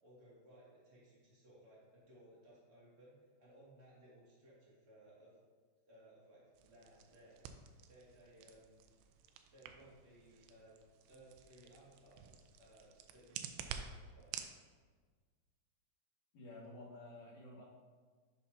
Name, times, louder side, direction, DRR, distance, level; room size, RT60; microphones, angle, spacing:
voice 1, 0.0-5.4 5.8-7.4 7.9-8.8 9.5-10.7 11.1-14.4, right 1 dB, 55° right, -7 dB, 0.7 m, -62 dB
sound 1, 6.5-14.5, right 8 dB, 85° right, 2.5 m, -51 dB
voice 2, 16.3-17.6, left 2 dB, 60° left, -10 dB, 2.2 m, -52 dB
9.7 x 5.7 x 2.8 m, 1.5 s
omnidirectional pair, 4.7 m